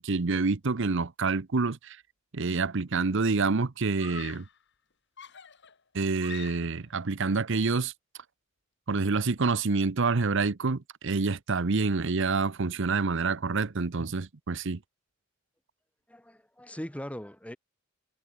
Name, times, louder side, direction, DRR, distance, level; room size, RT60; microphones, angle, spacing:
voice 1, 0.0-2.0 2.3-4.4 5.9-7.9 8.9-14.8, right 4 dB, 65° right, 0.8 m, -27 dB
Screaming, 2.8-2.9 4.0-4.6 5.2-6.9, left 8 dB, 60° left, 2.2 m, -46 dB
voice 2, 16.1-17.6, equal, 5° left, 2.2 m, -40 dB
head